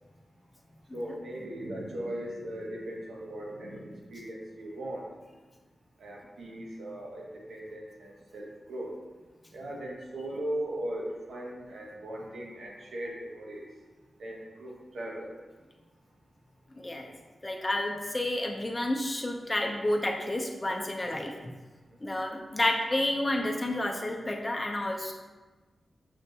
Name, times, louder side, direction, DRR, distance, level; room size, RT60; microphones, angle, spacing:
voice 1, 0.9-5.1 6.0-8.9 9.5-13.7 14.2-15.3, right 1 dB, 90° right, -2 dB, 0.9 m, -38 dB
voice 2, 16.8-17.1 17.4-21.3 22.0-25.1, left 1 dB, 25° left, 1 dB, 0.6 m, -30 dB
6.3 x 2.5 x 2.7 m, 1.3 s
wide cardioid pair, 100°, 0 cm